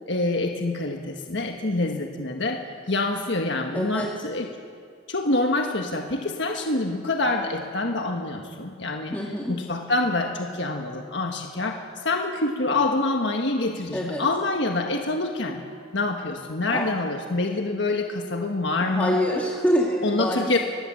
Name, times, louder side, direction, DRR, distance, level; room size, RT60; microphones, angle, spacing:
voice 1, 0.1-2.6 2.9-4.5 5.1-9.2 9.5-15.6 15.9-19.2 20.0-20.6, left 2 dB, 65° left, 3 dB, 1.5 m, -26 dB
voice 2, 3.7-4.1 9.1-9.5 13.9-14.2 16.7-16.9 18.8-20.6, equal, 10° left, -3 dB, 2.1 m, -25 dB
22.0 x 18.5 x 7.7 m, 2.1 s
head